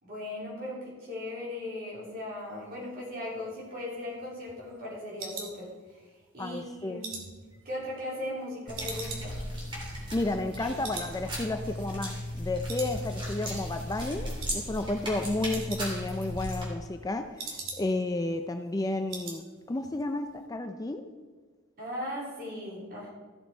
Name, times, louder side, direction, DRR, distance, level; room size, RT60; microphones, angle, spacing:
voice 1, 0.0-5.7 6.0-7.1 7.6-9.4 21.8-23.1, left 1 dB, 45° right, -5 dB, 3.8 m, -38 dB
sound 1, 3.5-6.2 6.6-8.4 8.7-10.6 10.8-11.2 11.4-11.5 12.0-12.4 12.7-13.4 13.7-14.0 14.4-14.6 14.9-15.0 15.2-16.2 16.5-18.1 18.4-18.5 18.8-19.4 19.7-20.0 20.3-20.4, right 4 dB, 75° right, 2.1 m, -42 dB
voice 2, 6.4-7.0 10.1-21.0, left 2 dB, 15° left, 6 dB, 0.4 m, -32 dB
sound 2, 8.7-16.6, equal, 25° right, 2.9 m, -36 dB
14.5 x 6.9 x 4.4 m, 1.5 s
head